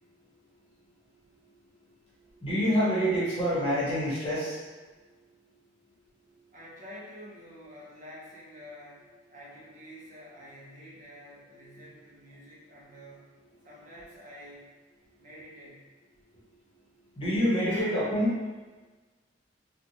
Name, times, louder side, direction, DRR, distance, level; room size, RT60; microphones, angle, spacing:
voice 1, 0.0-5.4 6.1-6.5 11.6-11.9 12.7-13.0 15.0-15.2 16.2-18.4, equal, 30° left, -8 dB, 0.9 m, -30 dB
voice 2, 6.5-13.3 13.6-14.7 15.2-15.9 17.7-17.9, equal, 45° right, -6 dB, 0.7 m, -48 dB
2.9 x 2.2 x 2.7 m, 1.3 s
head